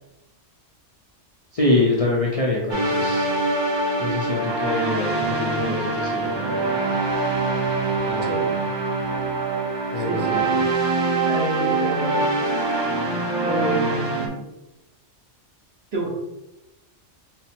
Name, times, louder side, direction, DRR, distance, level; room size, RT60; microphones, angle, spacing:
voice 1, 1.5-3.3 4.0-6.8 8.0-8.3 9.9-10.6, left 2 dB, 40° left, -4 dB, 0.5 m, -25 dB
sound 1, 2.7-14.3, right 3 dB, 40° right, 0.3 m, -24 dB
voice 2, 10.0-10.4 11.3-12.3 13.4-14.4 15.9-16.1, right 2 dB, 55° right, -2 dB, 1.1 m, -28 dB
4.2 x 2.1 x 4.2 m, 0.93 s
omnidirectional pair, 1.3 m